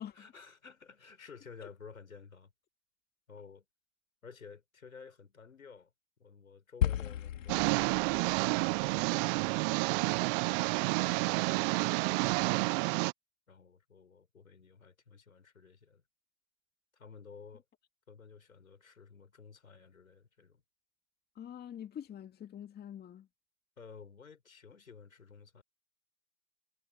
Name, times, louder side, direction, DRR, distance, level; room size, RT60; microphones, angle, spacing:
voice 1, 0.1-2.5 3.3-3.6 4.2-5.9 6.2-7.8 8.3-9.8 10.5-12.8 13.5-16.0 16.9-17.6 18.1-20.6 23.8-25.6, left 5 dB, 85° left, 4.8 m, -53 dB
sound 1, 6.8-11.2, left 10 dB, 70° left, 2.3 m, -37 dB
sound 2, 7.5-13.1, right 30 dB, 45° right, 0.7 m, -30 dB
voice 2, 21.4-23.3, left 9 dB, 25° left, 2.1 m, -45 dB
hypercardioid pair, 100°, 40 cm